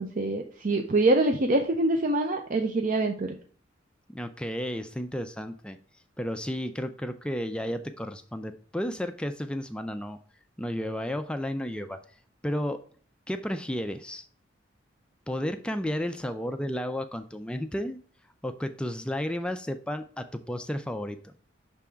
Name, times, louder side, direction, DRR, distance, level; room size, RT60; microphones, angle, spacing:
voice 1, 0.0-3.4, right 2 dB, 45° right, 4 dB, 0.5 m, -25 dB
voice 2, 4.1-5.8 6.2-10.2 10.6-12.0 12.4-12.8 13.3-14.3 15.3-18.0 18.4-21.3, equal, 5° left, 7 dB, 0.3 m, -32 dB
6.0 x 3.6 x 5.6 m, 0.43 s
head